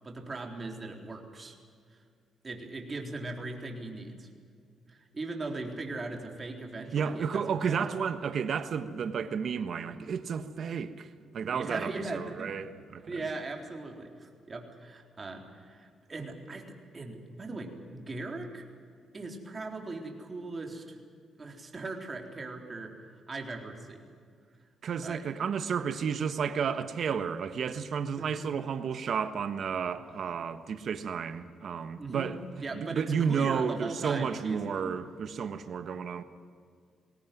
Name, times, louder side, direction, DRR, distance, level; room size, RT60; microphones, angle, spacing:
voice 1, 0.0-1.6 1.9-2.0 2.4-4.3 4.9-7.8 11.5-12.5 13.1-18.7 19.1-21.0 21.4-22.9 23.3-24.1 25.0-25.2 28.2-28.4 32.0-34.6 34.8-34.9, right 3 dB, 30° right, 3.9 m, -39 dB
voice 2, 6.9-13.2 24.8-36.2, right 6 dB, 55° right, 1.3 m, -32 dB
21.0 x 18.0 x 9.3 m
cardioid pair, 90°, 0 cm